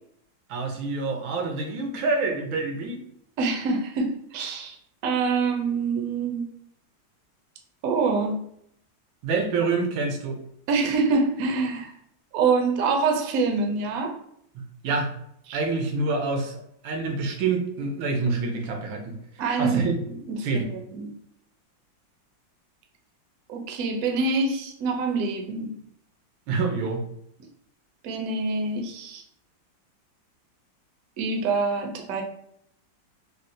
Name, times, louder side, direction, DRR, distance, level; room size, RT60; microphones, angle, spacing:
voice 1, 0.5-3.0 9.2-10.4 14.8-15.1 15.5-16.6 16.8-19.1 19.6-20.0 20.4-20.7 26.5-27.0, right 3 dB, 90° right, 3 dB, 1.4 m, -26 dB
voice 2, 3.4-4.8 5.0-6.5 7.8-8.4 10.7-11.9 12.3-14.2 15.5-15.6 19.4-21.1 23.5-25.7 28.0-29.2 31.2-32.2, right 4 dB, 70° right, 2 dB, 0.8 m, -25 dB
4.0 x 2.1 x 2.5 m, 0.72 s
omnidirectional pair, 2.1 m